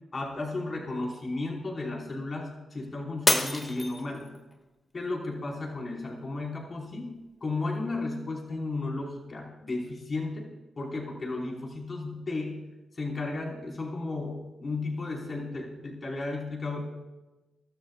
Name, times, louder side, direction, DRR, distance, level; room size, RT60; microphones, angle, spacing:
voice 1, 0.1-4.3 4.9-7.1 7.4-10.5 10.8-12.6 13.0-16.8, left 2 dB, 45° left, -1 dB, 5.0 m, -34 dB
Shatter, 3.3-4.5 5.1-5.5 6.1-6.2, left 2 dB, 25° left, 2.2 m, -27 dB
26.0 x 13.0 x 2.5 m, 1.1 s
supercardioid pair, 50°, 0 cm